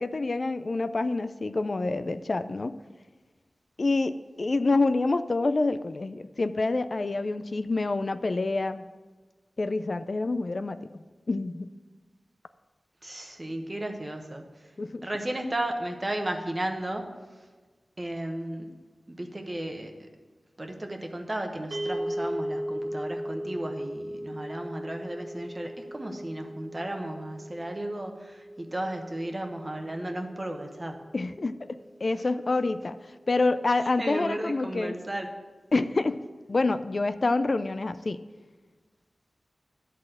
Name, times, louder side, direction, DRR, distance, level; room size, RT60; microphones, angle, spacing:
voice 1, 0.0-2.7 3.8-8.8 9.6-10.8 11.3-11.7 14.8-15.0 31.1-33.0 33.3-34.9 35.7-36.2 36.5-38.2, left 3 dB, 55° left, 12 dB, 0.3 m, -27 dB
voice 2, 13.0-14.5 15.0-17.0 18.0-18.7 19.1-19.9 20.6-31.0 32.2-32.3 34.0-35.3, right 1 dB, 30° right, 4 dB, 1.0 m, -34 dB
sound 1, 21.7-32.0, equal, 70° right, 0.9 m, -38 dB
11.0 x 4.1 x 7.5 m, 1.3 s
wide cardioid pair, 80°, 0 cm